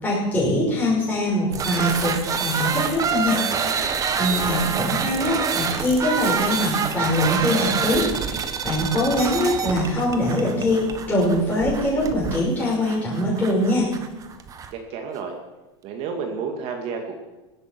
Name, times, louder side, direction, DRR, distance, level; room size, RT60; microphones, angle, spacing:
voice 1, 0.0-2.1 2.4-3.4 4.2-13.9, left 1 dB, 10° left, -7 dB, 6.1 m, -23 dB
sound 1, 1.5-14.7, right 6 dB, 25° right, 1.4 m, -27 dB
voice 2, 4.3-4.7 14.7-15.4 15.8-17.2, right 5 dB, 45° right, 3 dB, 2.1 m, -31 dB
16.5 x 12.5 x 6.1 m, 1.1 s
supercardioid pair, 140°, 14 cm